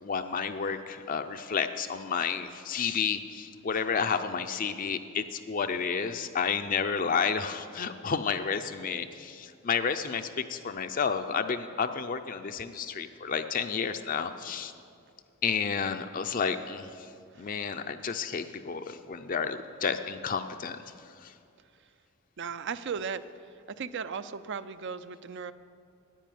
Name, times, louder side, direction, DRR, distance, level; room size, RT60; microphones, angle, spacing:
voice 1, 0.0-14.7 15.4-17.1 17.4-20.8 21.2-21.3, left 6 dB, 35° left, 8 dB, 0.4 m, -31 dB
voice 2, 22.4-23.2 23.8-25.5, right 6 dB, 50° right, 13 dB, 0.4 m, -36 dB
10.0 x 9.7 x 9.2 m, 2.4 s
head